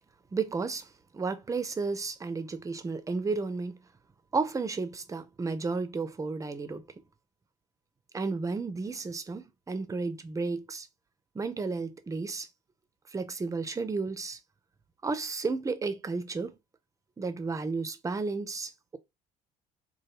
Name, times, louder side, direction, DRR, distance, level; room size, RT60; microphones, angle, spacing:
voice 1, 0.3-0.9 1.1-3.8 4.3-6.8 8.1-10.9 11.3-12.5 13.1-14.4 15.0-16.5 17.2-19.0, right 4 dB, 20° right, 0.6 m, -32 dB
3.2 x 2.2 x 2.9 m
hypercardioid pair, 65°, 16 cm